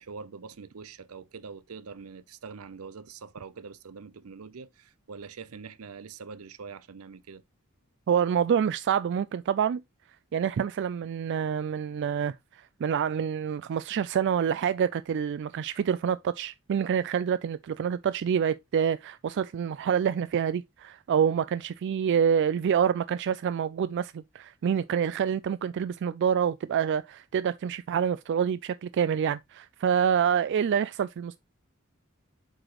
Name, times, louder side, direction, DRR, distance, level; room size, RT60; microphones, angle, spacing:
voice 1, 0.0-7.4, right 5 dB, 85° right, 0.6 m, -44 dB
voice 2, 8.1-9.8 10.3-31.4, right 8 dB, 55° right, 0.3 m, -27 dB
7.6 x 4.9 x 3.0 m
head